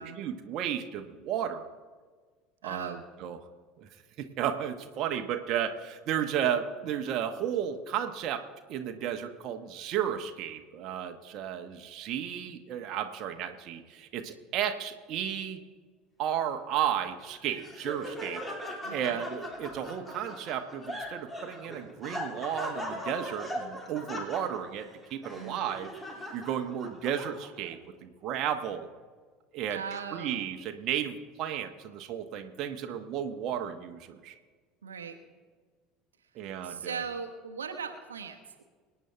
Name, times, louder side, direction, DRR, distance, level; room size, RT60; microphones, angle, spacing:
voice 1, 0.0-1.7 2.6-3.4 3.8-3.9 4.2-8.4 8.7-15.6 16.2-18.4 18.9-25.9 26.3-28.9 29.5-29.8 30.1-34.3 36.3-37.0, right 9 dB, 45° right, 5 dB, 1.1 m, -33 dB
voice 2, 2.6-3.1 18.8-19.2 25.3-25.7 29.7-30.4 34.8-35.2 36.6-38.6, right 6 dB, 75° right, 5 dB, 1.1 m, -39 dB
Laughter, 17.2-27.7, equal, 15° left, 3.1 m, -40 dB
25.0 x 9.4 x 3.4 m, 1.5 s
figure-of-eight pair, 65°, 0 cm